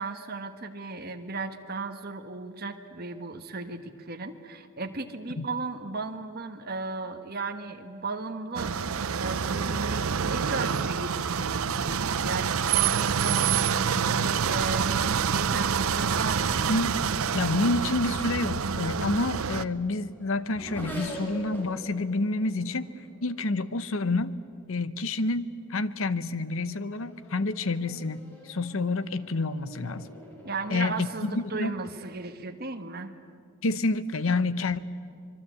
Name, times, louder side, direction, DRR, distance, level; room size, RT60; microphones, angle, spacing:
voice 1, 0.0-8.7 9.1-16.7 30.4-33.1, right 3 dB, 45° right, 6 dB, 1.4 m, -36 dB
sound 1, 8.6-19.6, right 7 dB, 70° right, 0.6 m, -27 dB
voice 2, 17.3-22.9 23.2-24.4 24.7-28.2 28.4-30.1 30.7-31.7 33.6-34.8, left 2 dB, 65° left, 15 dB, 0.8 m, -28 dB
Race car auto racing / Accelerating revving vroom, 19.9-24.8 25.6-25.9 26.4-32.3, equal, 10° left, 5.2 m, -45 dB
25.5 x 22.5 x 8.4 m, 2.3 s
head